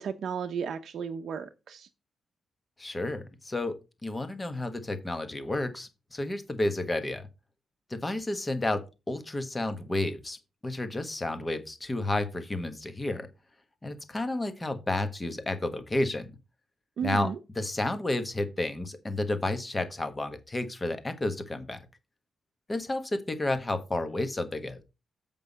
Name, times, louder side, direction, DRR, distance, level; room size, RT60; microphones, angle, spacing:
voice 1, 0.0-1.9 17.0-17.3, right 7 dB, 55° right, 7 dB, 0.7 m, -34 dB
voice 2, 2.8-3.7 4.0-7.3 7.9-8.8 9.1-10.4 10.6-13.3 13.8-16.3 17.0-17.3 17.5-21.8 22.7-24.8, left 2 dB, 15° left, 9 dB, 1.2 m, -31 dB
7.9 x 5.4 x 5.2 m, 0.28 s
wide cardioid pair, 175°, 0 cm